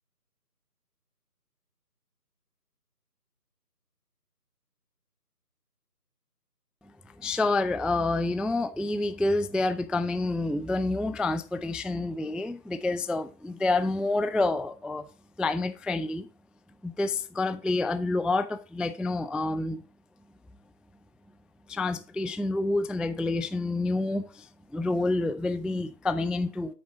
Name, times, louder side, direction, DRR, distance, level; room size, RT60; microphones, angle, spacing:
voice 1, 7.2-15.0 15.4-16.3 16.8-19.8 21.7-24.5 24.7-26.7, left 2 dB, ahead, 0.3 m, -28 dB
8.7 x 6.6 x 3.8 m
figure-of-eight pair, 160°, 49 cm